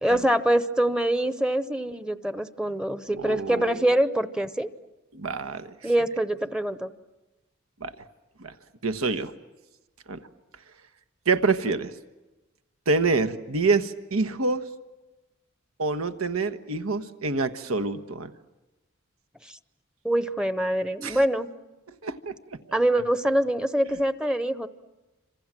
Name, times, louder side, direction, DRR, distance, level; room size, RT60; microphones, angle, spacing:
voice 1, 0.0-4.7 5.8-6.9 19.4-19.6 20.0-21.5 22.7-24.7, right 1 dB, 5° right, 12 dB, 0.8 m, -24 dB
voice 2, 3.1-3.9 5.1-5.7 7.8-7.9 8.4-8.5 8.8-9.3 10.1-10.2 11.2-11.9 12.9-14.6 15.8-18.3 21.0-21.2 22.0-22.6, right 3 dB, 85° right, 9 dB, 1.3 m, -26 dB
27.5 x 26.5 x 7.6 m, 1.1 s
head